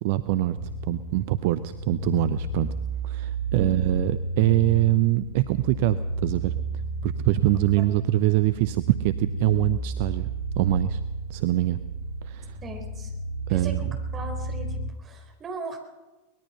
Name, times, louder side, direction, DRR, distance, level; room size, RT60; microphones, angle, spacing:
voice 1, 0.0-2.7 3.0-6.5 7.0-11.0 11.3-11.8 12.2-12.6 13.5-13.9, right 16 dB, 50° right, 12 dB, 0.7 m, -24 dB
sound 1, 0.6-14.9, right 2 dB, 75° right, 2.1 m, -32 dB
voice 2, 12.6-13.1 13.5-13.9 14.1-15.8, right 3 dB, 25° right, 4 dB, 4.2 m, -38 dB
23.0 x 20.0 x 5.7 m, 1.1 s
figure-of-eight pair, 90°, 0 cm